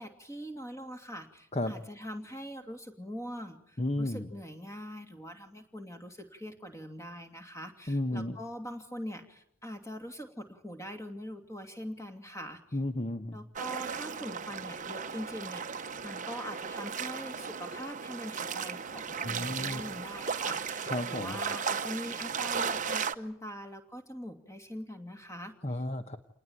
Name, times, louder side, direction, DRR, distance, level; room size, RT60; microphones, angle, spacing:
voice 1, 0.0-12.6 13.3-25.5, equal, 15° left, 6 dB, 2.7 m, -43 dB
voice 2, 3.8-4.3 7.9-8.4 12.7-13.4 19.2-19.8 20.9-21.4 25.6-26.2, left 1 dB, 30° left, 8 dB, 1.1 m, -33 dB
sound 1, 13.6-23.1, right 6 dB, 35° right, 1.0 m, -36 dB
28.5 x 19.5 x 9.1 m, 0.76 s
head